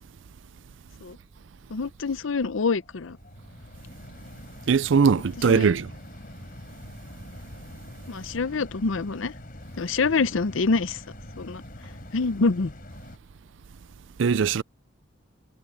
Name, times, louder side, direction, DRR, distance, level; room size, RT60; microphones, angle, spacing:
voice 1, 1.7-3.2 5.5-5.7 8.1-9.3 9.8-11.0 11.4-11.6 12.1-12.7, left 4 dB, 85° left, 0.6 m, -26 dB
sound 1, 1.9-13.2, left 1 dB, 45° left, 3.8 m, -44 dB
voice 2, 4.7-5.9 14.2-14.6, right 5 dB, 70° right, 0.4 m, -20 dB
head